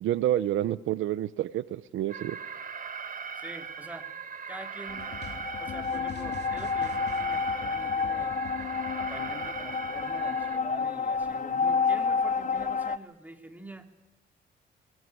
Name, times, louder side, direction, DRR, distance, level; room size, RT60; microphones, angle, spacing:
voice 1, 0.0-2.4, right 12 dB, 80° right, 16 dB, 0.8 m, -28 dB
Alarm, 2.1-10.6, right 6 dB, 45° right, 1.8 m, -39 dB
voice 2, 3.3-4.1 4.5-8.3 9.0-13.9, right 1 dB, 10° right, 5 dB, 2.9 m, -45 dB
sound 1, 4.9-10.6, left 6 dB, 55° left, 2.8 m, -45 dB
sound 2, 4.9-13.0, left 5 dB, 40° left, 0.9 m, -30 dB
20.5 x 20.5 x 9.6 m, 1.0 s
cardioid pair, 90°, 20 cm